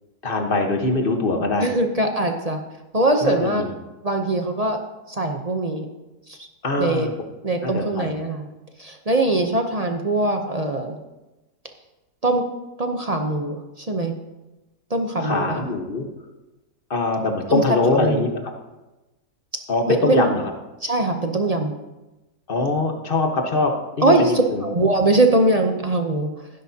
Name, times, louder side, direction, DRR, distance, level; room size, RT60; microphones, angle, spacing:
voice 1, 0.2-1.7 3.2-3.7 6.6-7.1 7.6-8.1 15.2-16.1 16.9-18.5 19.7-20.4 22.5-24.7, left 2 dB, 35° left, 3 dB, 1.3 m, -23 dB
voice 2, 1.6-2.6 2.9-3.6 4.0-4.8 5.1-5.9 6.3-6.5 6.8-7.1 7.4-8.5 8.8-11.0 12.2-12.4 12.8-14.1 14.9-15.6 17.5-17.6 17.9-18.3 19.9-20.3 20.8-21.7 24.0-26.3, right 2 dB, 35° right, 4 dB, 0.6 m, -21 dB
16.0 x 10.5 x 2.8 m, 1.1 s
omnidirectional pair, 1.7 m